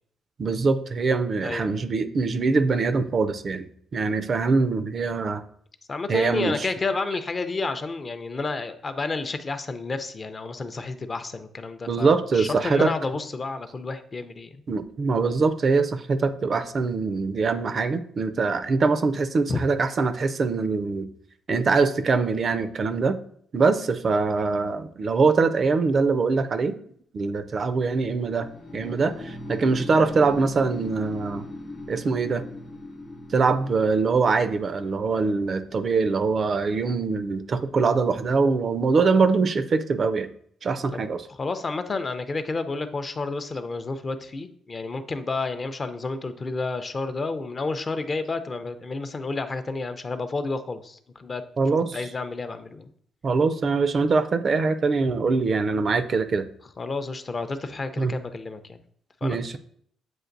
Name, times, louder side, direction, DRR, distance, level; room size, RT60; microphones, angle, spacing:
voice 1, 0.4-5.4 6.1-6.7 11.9-12.9 14.7-21.1 21.5-23.2 23.5-26.8 27.1-28.5 28.7-31.5 31.9-32.4 33.3-40.3 40.6-41.2 51.6-52.1 53.2-56.5 58.0-58.1 59.2-59.6, right 4 dB, 45° right, 11 dB, 0.3 m, -23 dB
voice 2, 1.4-1.7 5.9-14.6 19.5-19.6 40.9-41.0 41.3-51.4 51.7-52.9 56.8-58.8 59.2-59.4, left 3 dB, 35° left, 9 dB, 0.4 m, -30 dB
sound 1, 28.2-38.1, left 1 dB, 75° left, 0.9 m, -40 dB
7.6 x 2.5 x 2.5 m, 0.63 s
cardioid pair, 90°, 0 cm